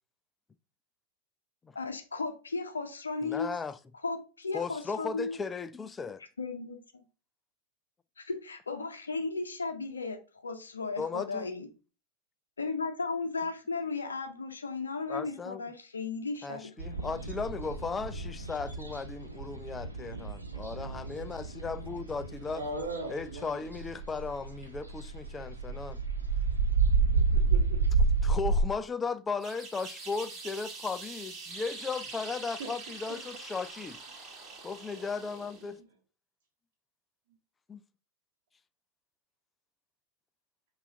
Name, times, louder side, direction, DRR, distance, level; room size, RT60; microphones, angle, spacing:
voice 1, 1.7-3.5 4.0-5.4 6.4-6.8 8.2-11.7 12.6-16.7, left 4 dB, 75° left, 0.6 m, -35 dB
voice 2, 3.2-3.8 4.5-6.2 11.0-11.5 15.1-15.6 16.4-22.6 23.1-26.0 28.2-34.0 34.6-35.8 37.7-37.8, left 4 dB, 15° left, 0.3 m, -36 dB
sound 1, 16.8-28.6, right 4 dB, 80° right, 0.8 m, -30 dB
voice 3, 22.5-23.6 27.1-27.8 32.6-32.7 33.1-33.2 35.6-35.7, right 2 dB, 50° right, 0.9 m, -39 dB
sound 2, 29.4-35.8, right 4 dB, 25° right, 1.5 m, -44 dB
5.5 x 2.5 x 3.6 m
figure-of-eight pair, 90°, 0 cm